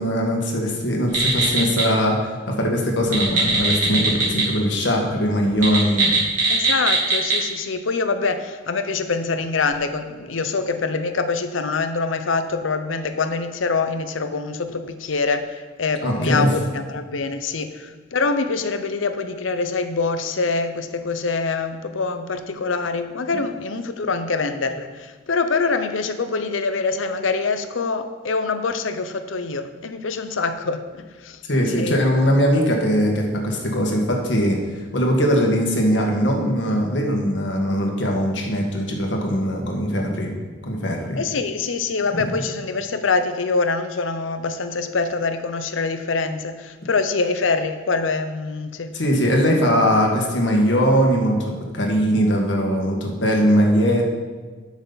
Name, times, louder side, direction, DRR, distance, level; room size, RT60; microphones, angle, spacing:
voice 1, 0.0-6.2 16.0-16.5 31.5-34.6 34.9-40.3 40.6-41.2 42.1-42.4 48.9-54.1, equal, 65° left, 0 dB, 1.7 m, -20 dB
sound 1, 1.1-1.8 3.0-4.4 4.7-4.8 5.5-7.4, right 3 dB, 40° right, 3.1 m, -20 dB
voice 2, 6.5-30.8 31.2-31.4 31.7-32.0 41.2-48.9, left 4 dB, 90° left, 9 dB, 0.7 m, -25 dB
12.0 x 6.2 x 4.0 m, 1.4 s
head